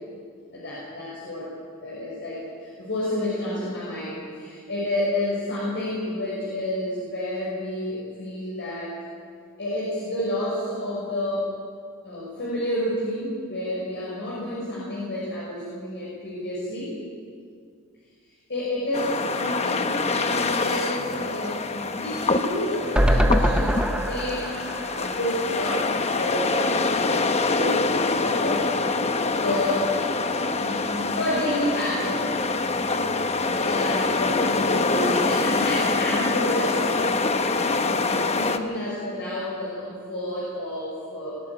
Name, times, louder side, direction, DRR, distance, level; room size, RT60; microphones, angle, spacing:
voice 1, 0.5-1.5 1.8-8.9 9.6-11.5 12.0-16.9 18.5-24.5 24.9-25.9 26.2-28.7 29.4-29.9 30.6-32.3 33.4-37.0 37.4-41.4, left 1 dB, 55° left, -7 dB, 5.9 m, -30 dB
sound 1, 18.9-38.6, left 3 dB, 30° left, 0.9 m, -25 dB
sound 2, 23.0-26.2 26.6-26.7 26.9-27.0, equal, 5° right, 0.9 m, -24 dB
22.0 x 15.5 x 8.7 m, 2.2 s
head